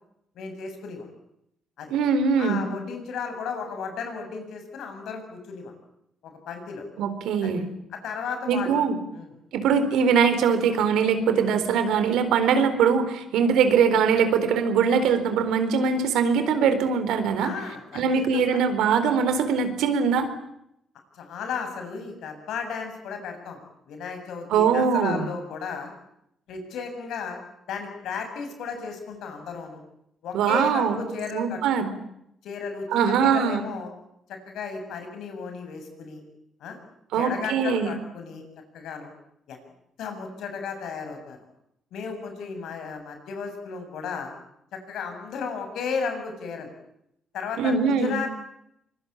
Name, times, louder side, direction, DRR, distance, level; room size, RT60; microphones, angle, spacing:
voice 1, 0.4-1.1 1.8-1.9 2.4-5.7 6.2-6.8 7.4-7.6 8.0-8.8 9.1-9.3 17.4-18.6 21.1-23.6 23.9-25.9 26.5-27.4 27.7-29.8 30.2-31.6 32.4-33.9 34.3-36.2 36.6-36.8 37.1-38.4 38.7-39.1 39.5-39.6 40.0-41.4 41.9-44.3 44.7-46.7 47.3-48.3, left 5 dB, 80° left, 6 dB, 7.5 m, -34 dB
voice 2, 1.9-2.6 7.0-7.6 8.5-9.0 9.5-17.5 17.9-20.3 24.5-25.3 30.3-31.0 31.3-31.9 32.9-33.6 37.1-37.9 47.6-48.2, right 6 dB, 85° right, 9 dB, 4.2 m, -22 dB
25.0 x 22.5 x 8.9 m, 0.78 s
cardioid pair, 90°, 0 cm